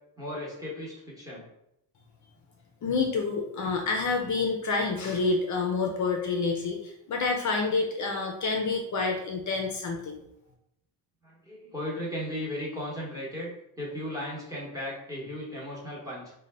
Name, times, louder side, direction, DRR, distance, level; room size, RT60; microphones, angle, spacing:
voice 1, 0.2-1.5 11.2-16.3, left 1 dB, 10° right, -4 dB, 0.9 m, -36 dB
voice 2, 2.8-10.2, left 4 dB, 40° left, 2 dB, 0.5 m, -28 dB
3.8 x 2.2 x 3.2 m, 0.79 s
cardioid pair, 145°, 46 cm